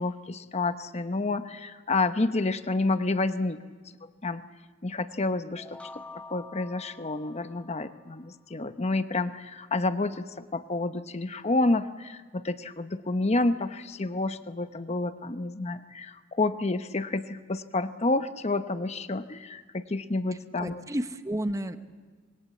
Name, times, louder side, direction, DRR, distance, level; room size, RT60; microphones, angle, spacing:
voice 1, 0.0-3.6 4.2-4.4 4.8-20.8, left 2 dB, 35° left, 10 dB, 0.9 m, -29 dB
sound 1, 5.6-8.3, left 3 dB, 5° left, 0.8 m, -47 dB
voice 2, 20.6-21.8, right 1 dB, 15° right, 9 dB, 1.0 m, -31 dB
26.5 x 21.5 x 8.3 m, 1.5 s
head